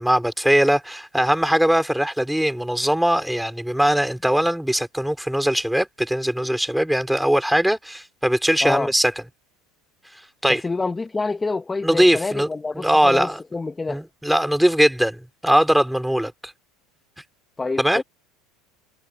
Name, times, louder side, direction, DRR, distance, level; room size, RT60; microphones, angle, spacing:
voice 1, 0.0-9.1 10.4-10.6 11.8-12.5 12.7-13.4 13.9-16.3 17.8-18.0, equal, ahead, 5.3 m, -20 dB
voice 2, 8.6-8.9 10.5-14.0 17.6-18.0, left 3 dB, 15° left, 1.5 m, -27 dB
hypercardioid pair, 90°, 0 cm